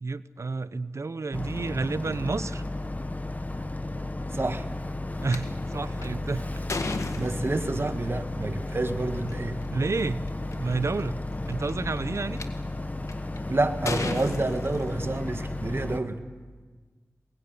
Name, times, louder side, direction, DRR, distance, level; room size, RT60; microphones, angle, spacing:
voice 1, 0.0-2.6 5.2-6.5 9.7-10.2 10.5-11.2 11.5-12.4, right 3 dB, 70° right, 14 dB, 0.9 m, -30 dB
Boat Water vehicle, 1.3-16.0, left 2 dB, 30° left, 1.5 m, -33 dB
voice 2, 4.3-4.6 7.2-9.6 13.5-16.2, right 2 dB, 50° right, 7 dB, 2.0 m, -28 dB
sound 1, 5.3-5.4 6.0-7.9 9.1-9.3 10.0-10.1 10.3-10.7 11.5-12.4 13.1-13.4 13.9-15.3, left 3 dB, 85° left, 1.8 m, -33 dB
22.0 x 20.5 x 9.8 m, 1.4 s
cardioid pair, 45°, 5 cm